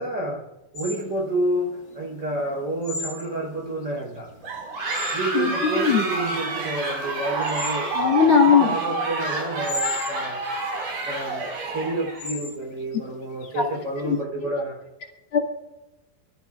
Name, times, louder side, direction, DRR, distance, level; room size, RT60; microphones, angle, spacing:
voice 1, 0.0-4.3 5.1-10.4 11.0-14.8, right 1 dB, 25° right, -1 dB, 4.8 m, -29 dB
sound 1, 0.7-14.2, left 3 dB, 70° left, 0.9 m, -38 dB
sound 2, 4.4-12.3, right 3 dB, 60° right, 6.8 m, -28 dB
voice 2, 8.0-8.7 14.0-14.2 15.3-15.4, left 7 dB, 45° left, 0 dB, 1.9 m, -18 dB
25.5 x 15.5 x 2.5 m, 1.0 s
omnidirectional pair, 4.7 m